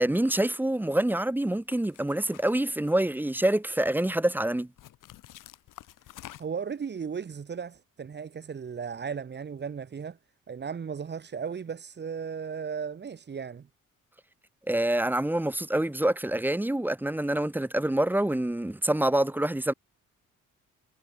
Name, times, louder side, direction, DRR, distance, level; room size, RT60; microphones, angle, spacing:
voice 1, 0.0-4.7 14.7-19.7, right 1 dB, 5° right, 0.8 m, -26 dB
sound 1, 0.8-1.2 1.7-3.2 3.5-4.1 4.8-6.7, left 14 dB, 80° left, 4.6 m, -49 dB
voice 2, 6.4-10.2 10.5-13.7, right 6 dB, 35° right, 1.2 m, -36 dB
cardioid pair, 95°, 32 cm